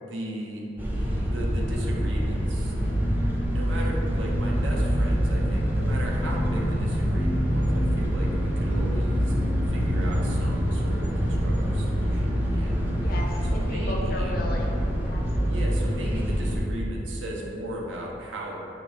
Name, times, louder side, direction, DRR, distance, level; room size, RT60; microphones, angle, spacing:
voice 1, 0.0-0.7 1.3-2.8 3.5-9.3 9.7-12.7 13.5-14.4 15.5-18.6, equal, 75° right, -2 dB, 0.7 m, -36 dB
sound 1, 0.8-16.6, equal, 10° right, 0.5 m, -25 dB
voice 2, 13.0-15.8, left 1 dB, 50° left, 0 dB, 0.6 m, -36 dB
4.9 x 2.8 x 3.2 m, 2.9 s
head